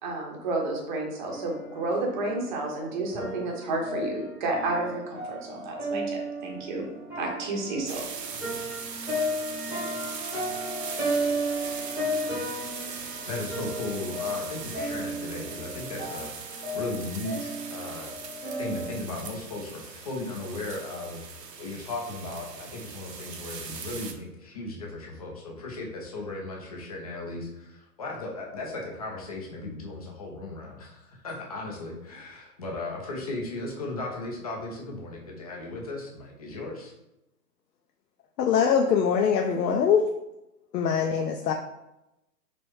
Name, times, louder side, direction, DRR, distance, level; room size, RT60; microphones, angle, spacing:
voice 1, 0.0-6.8 7.2-8.0, right 2 dB, 30° right, 0 dB, 0.7 m, -31 dB
sound 1, 1.3-19.0, equal, 5° right, 1.1 m, -34 dB
sound 2, 7.9-24.1, right 5 dB, 90° right, 0.7 m, -40 dB
voice 2, 13.3-36.9, left 2 dB, 25° left, -1 dB, 0.4 m, -36 dB
voice 3, 38.4-40.1 40.7-41.5, left 7 dB, 80° left, 2 dB, 0.6 m, -23 dB
3.1 x 2.9 x 3.1 m, 0.91 s
hypercardioid pair, 140°, 48 cm